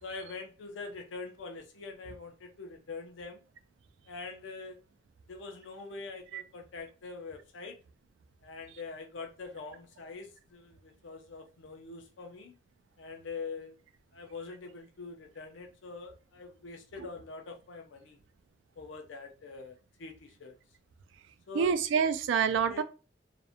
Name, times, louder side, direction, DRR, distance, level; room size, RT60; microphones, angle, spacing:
voice 1, 0.0-3.4 4.1-4.8 5.3-7.8 8.4-12.6 13.0-13.8 14.1-18.2 18.8-20.5 21.5-21.7 22.7-22.8, left 4 dB, 80° left, 0.5 m, -44 dB
voice 2, 21.5-22.8, right 6 dB, 80° right, 0.3 m, -27 dB
2.4 x 2.1 x 2.7 m
head